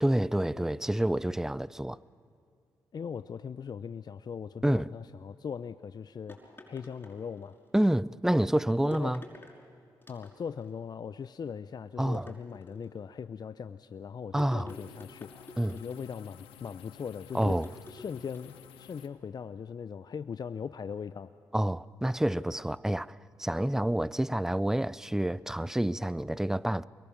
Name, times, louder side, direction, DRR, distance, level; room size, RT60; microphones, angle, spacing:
voice 1, 0.0-2.0 4.6-4.9 7.7-9.2 12.0-12.3 14.3-14.7 15.6-15.8 17.3-17.7 21.5-26.9, right 1 dB, 5° right, 0.5 m, -28 dB
voice 2, 2.9-7.6 8.8-9.2 10.1-21.3, left 6 dB, 50° left, 0.6 m, -40 dB
sound 1, 6.3-7.7 8.9-9.6 10.0-10.7 12.1-13.0 14.4-16.2 17.4-18.7, left 2 dB, 25° left, 5.7 m, -49 dB
sound 2, 14.7-19.1, left 11 dB, 85° left, 1.1 m, -53 dB
24.0 x 22.0 x 7.3 m
supercardioid pair, 50°, 9 cm